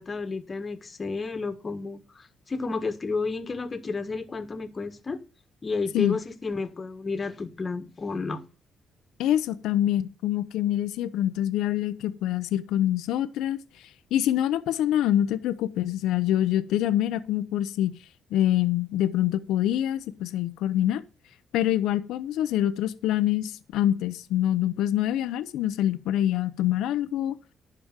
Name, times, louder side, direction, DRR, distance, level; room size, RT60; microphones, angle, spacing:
voice 1, 0.0-5.2 5.6-8.4, left 4 dB, 30° left, 1.5 m, -31 dB
voice 2, 9.2-13.6 14.1-18.0 18.3-21.0 21.5-27.3, left 12 dB, 85° left, 0.7 m, -25 dB
11.5 x 5.0 x 7.3 m
cardioid pair, 90°, 0 cm